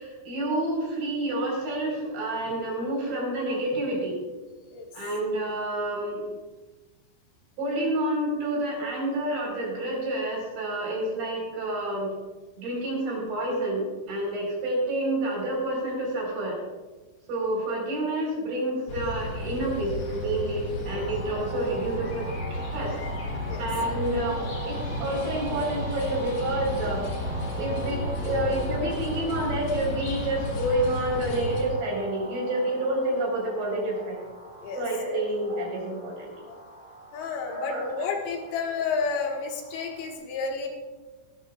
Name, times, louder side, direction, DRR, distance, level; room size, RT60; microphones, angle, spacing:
voice 1, 0.0-4.1 4.9-6.2 7.6-12.1 12.6-16.6 17.3-23.0 23.6-27.1 27.6-34.2 34.8-36.3 37.5-38.1, right 1 dB, 75° right, -2 dB, 6.4 m, -29 dB
sound 1, 18.9-31.6, left 1 dB, 50° left, 2.0 m, -33 dB
sound 2, 20.8-40.1, right 1 dB, 10° right, 0.5 m, -41 dB
voice 2, 37.1-40.7, left 5 dB, 75° left, 1 dB, 3.5 m, -31 dB
23.0 x 12.0 x 2.3 m, 1.3 s
omnidirectional pair, 5.2 m